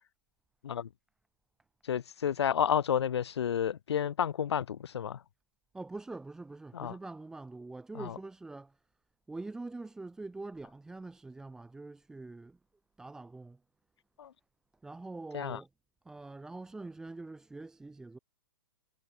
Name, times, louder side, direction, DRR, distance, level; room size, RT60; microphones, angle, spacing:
voice 1, 1.8-5.2 6.7-6.9 7.9-8.1 14.2-14.3 15.3-15.6, left 9 dB, 75° left, 1.0 m, -31 dB
voice 2, 5.7-8.7 9.3-12.6 13.0-13.6 14.8-15.7 16.0-18.2, right 3 dB, 5° right, 1.1 m, -44 dB
hypercardioid pair, 160°, 14 cm